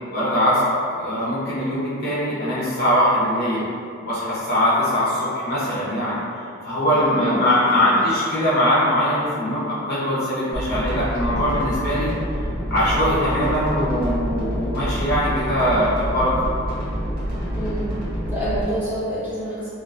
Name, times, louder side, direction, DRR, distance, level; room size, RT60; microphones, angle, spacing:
voice 1, 0.1-3.6 4.1-6.2 6.6-12.1 12.7-16.3, equal, 45° left, -9 dB, 0.6 m, -21 dB
voice 2, 6.9-7.5 7.7-8.1 17.5-18.0 18.3-19.7, right 1 dB, 10° right, -14 dB, 0.9 m, -28 dB
sound 1, 10.5-18.6, equal, 45° right, 0.7 m, -27 dB
2.4 x 2.2 x 2.4 m, 2.4 s
head